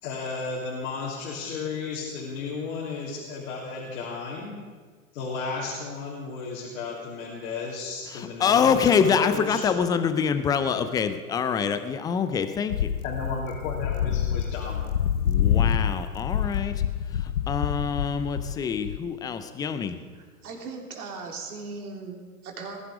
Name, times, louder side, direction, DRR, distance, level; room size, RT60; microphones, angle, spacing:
voice 1, 0.0-4.6 5.1-9.6 13.0-14.9, left 4 dB, 65° left, -4 dB, 3.2 m, -34 dB
voice 2, 8.1-12.9 15.3-16.7 17.1-20.0, left 6 dB, 10° left, 11 dB, 0.4 m, -25 dB
sound 1, 12.7-19.0, left 9 dB, 85° left, 0.8 m, -27 dB
voice 3, 20.1-22.8, right 4 dB, 70° right, 2 dB, 3.2 m, -38 dB
19.5 x 11.5 x 5.0 m, 1.5 s
hypercardioid pair, 110°, 45 cm